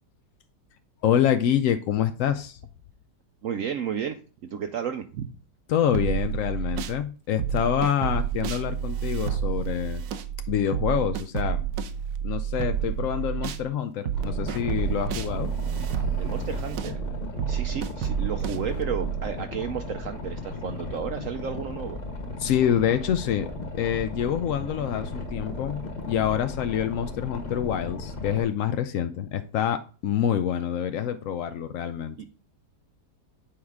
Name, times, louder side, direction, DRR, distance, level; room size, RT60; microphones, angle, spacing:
voice 1, 1.0-2.6 5.7-10.0 10.5-11.6 12.2-15.5 22.4-23.5 23.8-32.3, left 9 dB, 80° left, 9 dB, 0.7 m, -26 dB
voice 2, 3.4-5.3 16.2-17.0 17.5-22.0 32.2-32.3, right 7 dB, 70° right, 7 dB, 0.8 m, -32 dB
sound 1, 5.9-7.0 7.4-13.6 14.1-19.3, right 9 dB, 85° right, 1.3 m, -29 dB
Boat Water vehicle, 14.1-28.4, left 2 dB, 35° left, 0.8 m, -36 dB
8.6 x 4.7 x 3.5 m, 0.37 s
omnidirectional pair, 1.9 m